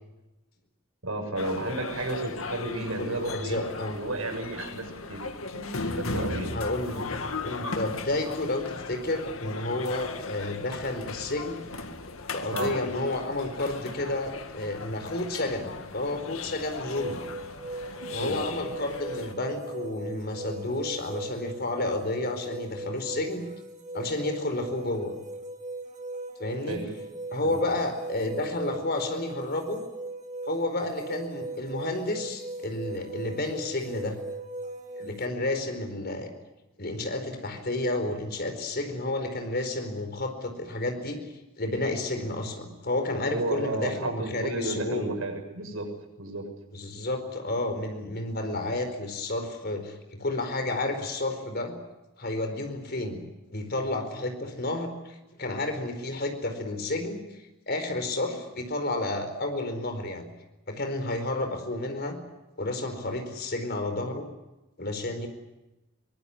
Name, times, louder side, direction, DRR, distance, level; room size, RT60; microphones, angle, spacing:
voice 1, 1.0-5.3 5.5-6.5 12.5-12.7 18.2-18.4 26.6-27.0 27.4-27.6 43.2-45.9 46.2-46.5, right 2 dB, 85° right, 4 dB, 6.9 m, -33 dB
sound 1, 1.4-19.3, left 3 dB, 80° left, 2.0 m, -37 dB
voice 2, 3.0-4.0 6.5-7.1 7.4-11.7 12.3-17.2 18.1-23.5 23.9-25.1 26.4-26.8 27.3-29.8 30.5-34.2 35.0-36.3 36.8-41.2 41.6-45.1 46.7-51.7 52.2-53.2 53.5-57.2 57.7-60.3 60.7-62.2 62.6-64.3 64.8-65.3, left 2 dB, 50° left, 6 dB, 4.6 m, -31 dB
sound 2, 16.9-35.3, right 2 dB, 35° right, 2.4 m, -39 dB
23.5 x 20.0 x 9.8 m, 1.0 s
head